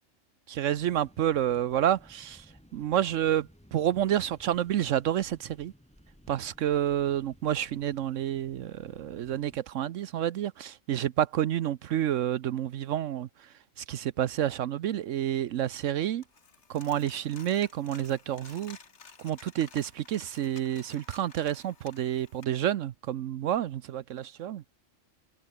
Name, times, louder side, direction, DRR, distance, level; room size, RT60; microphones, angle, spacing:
voice 1, 0.5-2.4 2.7-5.7 6.3-13.3 13.8-16.2 16.7-18.8 19.2-24.6, right 11 dB, 75° right, 1.0 m, -29 dB
sound 1, 0.7-9.6, equal, 5° left, 7.4 m, -57 dB
Coin (dropping), 16.2-22.4, left 5 dB, 60° left, 1.9 m, -53 dB
omnidirectional pair, 1.4 m